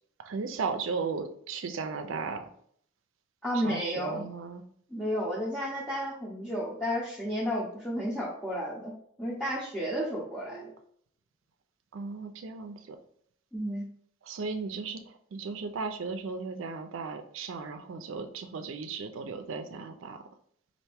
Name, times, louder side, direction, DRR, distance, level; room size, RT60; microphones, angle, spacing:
voice 1, 0.2-2.5 3.5-4.6 11.9-13.0 14.2-20.2, right 4 dB, 80° right, 7 dB, 0.4 m, -36 dB
voice 2, 3.4-4.2 4.9-8.9 9.2-10.7 13.5-13.9, equal, 10° left, -7 dB, 0.7 m, -32 dB
4.3 x 2.5 x 3.4 m, 0.64 s
head